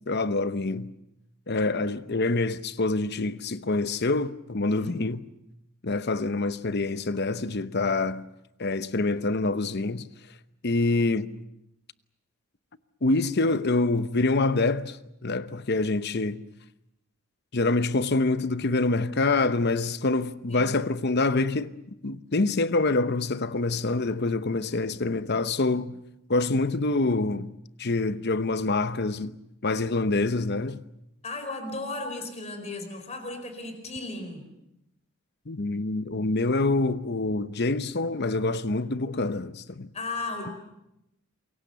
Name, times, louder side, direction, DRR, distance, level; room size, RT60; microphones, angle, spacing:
voice 1, 0.1-0.9 1.5-5.2 5.8-8.3 8.6-10.1 10.6-11.3 13.0-15.0 15.2-16.4 17.5-21.7 22.0-26.0 26.3-27.5 27.8-29.3 29.6-30.8 35.5-39.9, left 3 dB, 50° left, 0.9 m, -26 dB
voice 2, 31.2-34.4 39.9-40.5, left 2 dB, 30° left, 4.7 m, -35 dB
28.0 x 23.0 x 7.0 m
head